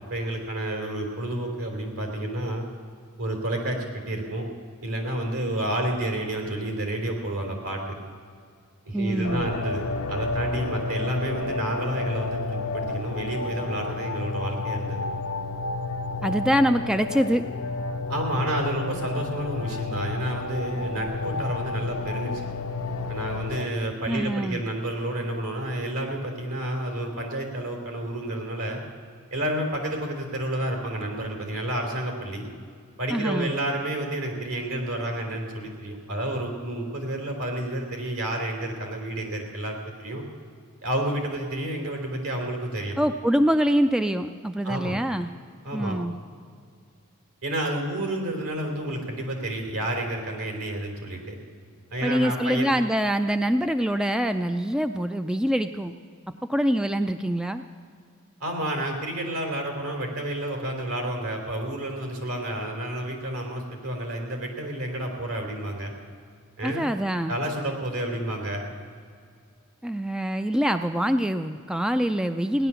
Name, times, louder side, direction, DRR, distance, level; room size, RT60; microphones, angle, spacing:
voice 1, 0.1-2.6 3.2-4.5 4.8-8.0 8.8-9.8 10.1-15.0 18.1-22.3 23.1-28.8 29.3-32.5 33.0-40.2 40.8-43.0 44.6-45.0 45.6-46.0 47.4-51.3 51.9-52.7 58.4-65.9 66.6-66.8 67.3-68.6, right 1 dB, 75° right, 2 dB, 3.2 m, -30 dB
voice 2, 8.9-9.5 16.2-17.4 24.1-24.6 33.1-33.5 43.0-45.3 45.7-46.1 52.0-55.9 56.5-57.6 66.6-67.4 69.8-72.7, equal, 5° right, 8 dB, 0.3 m, -24 dB
sound 1, 9.2-23.7, left 3 dB, 65° left, 0.6 m, -31 dB
17.0 x 11.0 x 6.9 m, 2.1 s
head